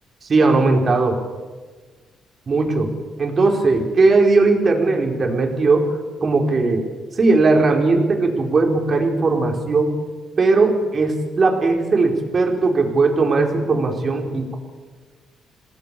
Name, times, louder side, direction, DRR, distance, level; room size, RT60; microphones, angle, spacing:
voice 1, 0.3-1.2 2.5-2.9 3.2-6.8 7.1-9.9 10.4-14.6, right 3 dB, 40° right, 2 dB, 4.8 m, -18 dB
27.5 x 19.0 x 7.0 m, 1.3 s
cardioid pair, 90°, 0 cm